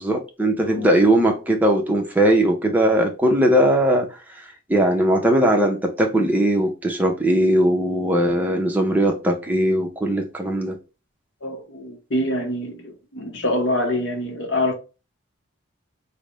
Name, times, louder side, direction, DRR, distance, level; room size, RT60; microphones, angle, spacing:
voice 1, 0.0-4.1 4.7-10.8, right 1 dB, 10° right, 0.5 m, -19 dB
voice 2, 11.4-14.7, left 1 dB, 55° left, 0.7 m, -25 dB
3.3 x 2.0 x 3.9 m
head